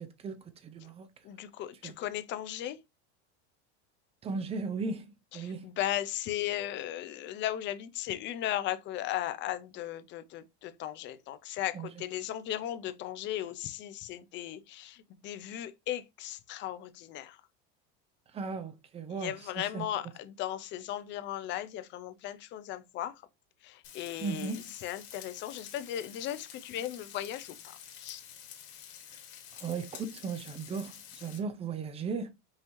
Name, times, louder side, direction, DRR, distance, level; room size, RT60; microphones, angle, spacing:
voice 1, 0.0-1.1 1.8-2.0 4.2-5.7 11.7-12.0 18.3-20.1 24.2-24.7 29.1-29.2 29.5-32.3, right 5 dB, 20° right, 0.6 m, -37 dB
voice 2, 1.3-2.8 5.6-15.0 15.2-17.4 19.2-23.1 23.6-24.5 24.8-27.5 28.0-28.2, left 12 dB, 35° left, 0.5 m, -36 dB
Frying (food), 23.8-31.4, left 9 dB, 90° left, 1.9 m, -49 dB
5.5 x 2.7 x 3.0 m
supercardioid pair, 145°, 32 cm